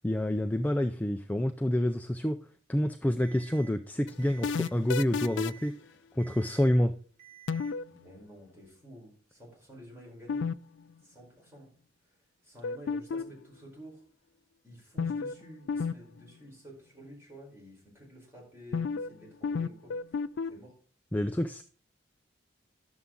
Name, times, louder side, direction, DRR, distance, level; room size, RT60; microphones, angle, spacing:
voice 1, 0.0-2.4 2.7-5.7 6.2-6.9 21.1-21.6, left 1 dB, 10° left, 6 dB, 0.4 m, -28 dB
Alarm, 3.2-3.7 4.2-4.7 5.2-5.7 6.2-6.7 7.2-7.7, right 13 dB, 40° right, 2.9 m, -52 dB
sound 1, 4.1-5.7 7.5-7.9 10.3-10.5 10.8-10.9 12.6-13.4 15.0-15.4 15.7-15.9 16.2-16.3 18.7-19.1 19.4-20.5, left 5 dB, 85° left, 0.4 m, -31 dB
voice 2, 7.9-10.5 11.0-11.7 12.4-14.0 14.6-19.9 20.5-20.8, equal, 15° right, -3 dB, 4.2 m, -50 dB
11.0 x 7.0 x 3.7 m, 0.42 s
head